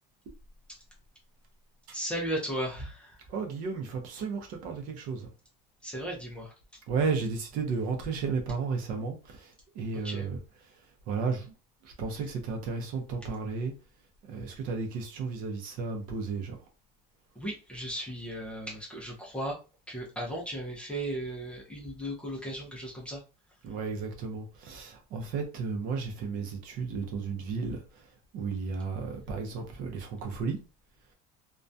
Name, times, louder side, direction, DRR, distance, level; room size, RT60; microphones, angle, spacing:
voice 1, 1.9-3.2 5.8-6.5 10.0-10.3 17.4-19.6 19.9-23.2, right 1 dB, 5° left, 0.5 m, -36 dB
voice 2, 3.3-5.3 6.9-10.4 10.6-10.7 11.1-11.5 11.8-13.7 14.2-16.6 23.6-30.6, right 4 dB, 45° right, 0.6 m, -33 dB
2.3 x 2.2 x 2.5 m
cardioid pair, 175°, 19 cm